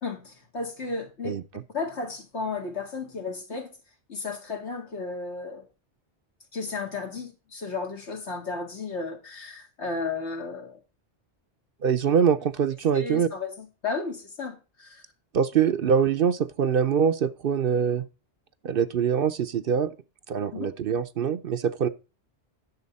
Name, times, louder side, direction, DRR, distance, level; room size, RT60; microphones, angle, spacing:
voice 1, 0.0-1.3 1.7-3.7 4.1-5.7 6.5-10.8 12.9-15.0 20.5-20.7, left 4 dB, 75° left, 2.4 m, -33 dB
voice 2, 11.8-13.3 15.3-18.0 18.6-19.9 20.3-21.9, right 7 dB, 60° right, 0.8 m, -24 dB
11.0 x 7.2 x 4.1 m
omnidirectional pair, 1.2 m